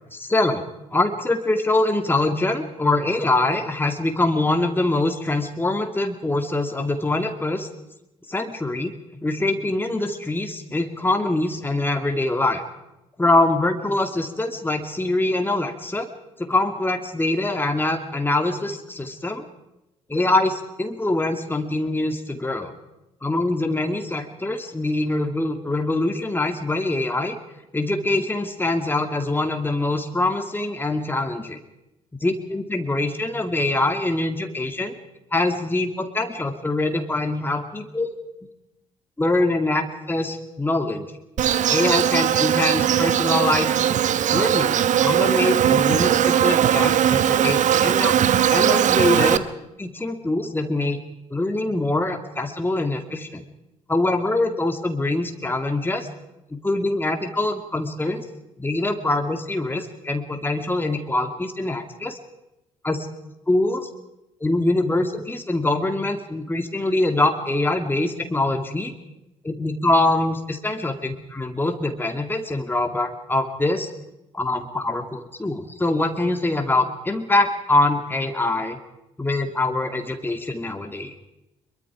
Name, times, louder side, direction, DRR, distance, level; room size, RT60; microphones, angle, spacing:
voice 1, 0.1-0.6 0.9-7.7 8.3-8.9 9.2-12.6 13.2-16.1 16.4-19.4 20.1-22.8 23.2-27.4 27.7-31.6 32.2-34.9 35.3-38.1 39.2-41.1 41.7-43.7 44.3-48.1 48.5-49.5 49.8-51.0 51.3-53.4 53.9-56.1 56.5-58.2 58.6-62.2 62.8-63.1 63.5-63.9 64.4-68.9 69.4-73.9 74.3-78.8 79.2-81.1, left 2 dB, 10° left, 5 dB, 2.2 m, -24 dB
Insect, 41.4-49.4, right 10 dB, 50° right, 1.0 m, -19 dB
24.0 x 22.5 x 5.0 m, 0.92 s
figure-of-eight pair, 45°, 17 cm